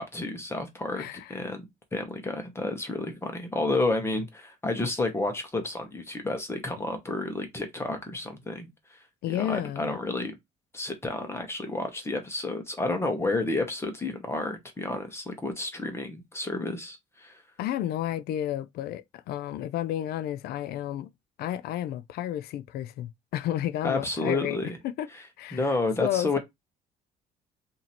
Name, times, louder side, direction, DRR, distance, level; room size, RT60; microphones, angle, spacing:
voice 1, 0.0-1.6 1.9-8.7 9.3-10.3 10.7-17.3 23.8-24.7 25.1-25.2 25.5-26.4, left 2 dB, 15° left, 1.0 m, -30 dB
voice 2, 1.0-1.4 9.2-10.0 17.6-21.1 21.4-24.6 24.8-25.1 25.4-26.4, left 12 dB, 70° left, 0.4 m, -32 dB
2.9 x 2.8 x 4.1 m
cardioid pair, 110°, 17 cm